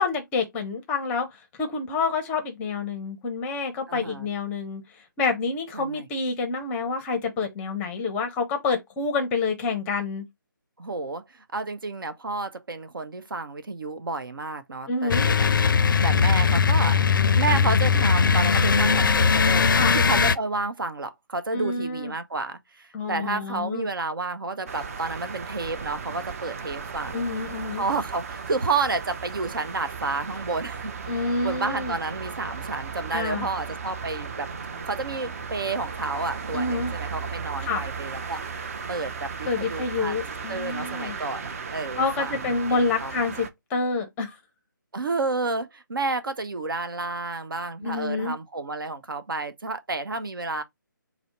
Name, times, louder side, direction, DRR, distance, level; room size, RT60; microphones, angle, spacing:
voice 1, 0.0-4.8 5.2-10.3 14.9-15.3 19.8-19.9 21.5-22.1 22.9-23.9 27.1-27.8 31.1-31.9 33.1-33.5 36.5-36.9 37.6-37.9 39.5-41.2 41.9-44.4 47.8-48.3, left 4 dB, 10° left, 0.6 m, -28 dB
voice 2, 3.9-4.3 5.7-6.0 10.8-15.5 16.0-17.0 17.3-27.3 27.7-34.5 34.8-38.4 38.9-40.2 40.5-43.1 44.9-50.6, right 3 dB, 75° right, 0.8 m, -31 dB
sound 1, 15.1-20.3, left 5 dB, 70° left, 0.4 m, -20 dB
sound 2, 24.7-43.5, right 5 dB, 45° right, 0.6 m, -36 dB
4.2 x 2.0 x 4.4 m
figure-of-eight pair, 155°, 11 cm